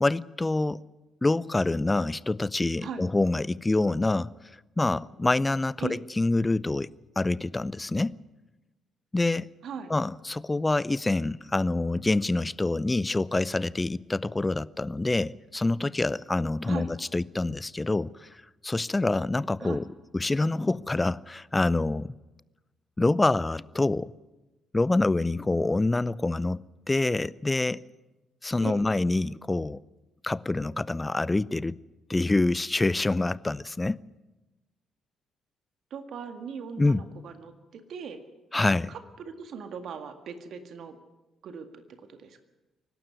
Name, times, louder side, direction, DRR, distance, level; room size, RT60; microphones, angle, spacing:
voice 1, 0.0-0.8 1.2-4.3 4.8-6.9 7.2-8.2 9.1-9.5 9.9-19.9 20.1-22.1 23.0-24.1 24.7-27.8 28.4-29.8 30.2-31.8 32.1-34.0 36.8-37.0 38.5-38.9, left 2 dB, 20° left, 0.6 m, -26 dB
voice 2, 35.9-38.2 38.9-41.0 41.4-42.4, right 6 dB, 60° right, 1.9 m, -39 dB
24.5 x 12.0 x 9.4 m
hypercardioid pair, 45°, 0 cm